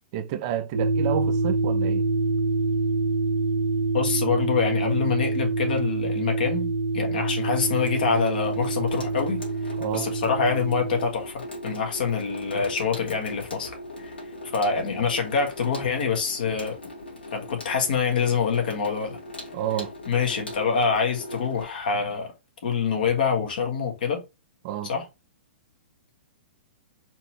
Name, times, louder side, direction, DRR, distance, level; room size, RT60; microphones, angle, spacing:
voice 1, 0.1-2.1 9.8-10.1 19.5-19.9 24.6-24.9, right 11 dB, 35° right, 0.4 m, -29 dB
sound 1, 0.7-11.1, right 3 dB, 80° right, 1.1 m, -26 dB
voice 2, 3.9-6.7 6.9-9.4 9.9-14.1 14.5-16.8 17.3-19.2 20.1-22.3 22.6-24.2 24.8-25.1, left 6 dB, 55° left, 1.6 m, -25 dB
Water tap faucet / Sink (filling or washing), 7.4-21.6, left 1 dB, 70° left, 2.0 m, -39 dB
4.2 x 3.0 x 3.1 m
figure-of-eight pair, 110°, 6 cm